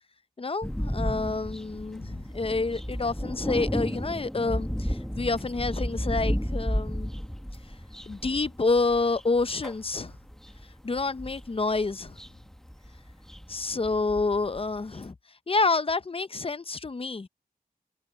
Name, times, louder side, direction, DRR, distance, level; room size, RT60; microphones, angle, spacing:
voice 1, 0.4-7.1 8.1-10.1 10.8-12.2 13.5-15.1 15.5-17.3, left 3 dB, 35° left, 0.7 m, -28 dB
sound 1, 0.6-15.1, equal, 5° left, 1.0 m, -33 dB
wide cardioid pair, 65°, 16 cm